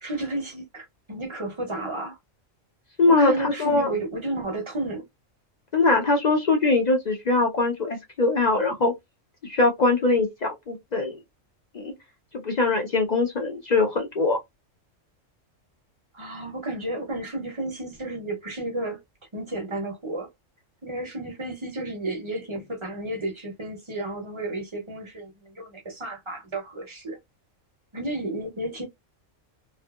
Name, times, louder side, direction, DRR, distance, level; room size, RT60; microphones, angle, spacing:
voice 1, 0.0-2.2 3.1-5.0 16.1-19.0 19.3-20.3 20.8-27.2 27.9-28.8, right 2 dB, 30° right, 0.6 m, -32 dB
voice 2, 3.0-3.9 5.7-8.9 9.4-11.2 11.7-11.9 12.4-14.4, left 3 dB, 55° left, 0.4 m, -22 dB
2.6 x 2.4 x 2.2 m
omnidirectional pair, 1.3 m